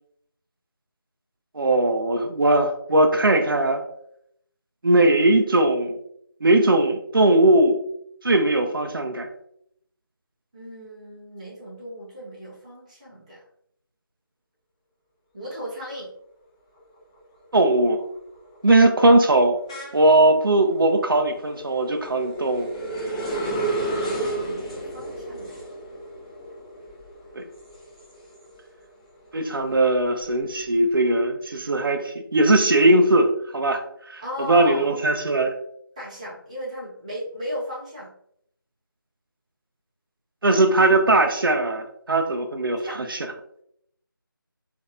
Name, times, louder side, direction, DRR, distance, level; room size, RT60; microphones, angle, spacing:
voice 1, 1.5-3.8 4.8-6.0 6.4-7.8 8.2-9.3 17.5-18.0 18.6-19.6 19.9-22.7 27.3-27.4 29.3-33.8 34.1-34.2 34.5-35.5 40.4-43.2, right 2 dB, 70° right, 4 dB, 0.5 m, -19 dB
voice 2, 10.5-13.4 15.3-16.1 23.3-23.8 24.1-25.6 34.2-34.9 36.0-38.1 42.8-43.1, equal, 20° right, -8 dB, 0.8 m, -36 dB
sound 1, 16.8-17.2 17.6-28.8 29.2-30.9, right 2 dB, 15° left, 0.8 m, -33 dB
3.9 x 2.7 x 2.5 m, 0.71 s
figure-of-eight pair, 170°, 12 cm